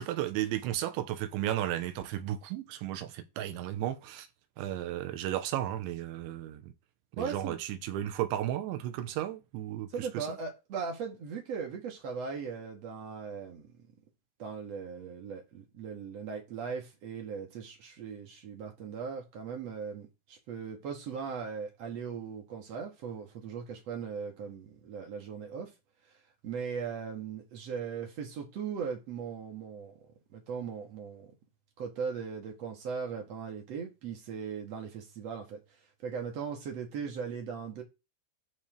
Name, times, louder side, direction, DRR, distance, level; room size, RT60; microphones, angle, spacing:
voice 1, 0.0-4.3 4.6-6.7 7.2-10.4, right 12 dB, 85° right, 3.3 m, -34 dB
voice 2, 7.2-7.6 9.9-13.9 14.4-25.7 26.4-29.9 30.3-31.3 31.8-35.6 36.0-37.8, right 6 dB, 45° right, 2.5 m, -38 dB
11.5 x 4.7 x 4.6 m
omnidirectional pair, 5.3 m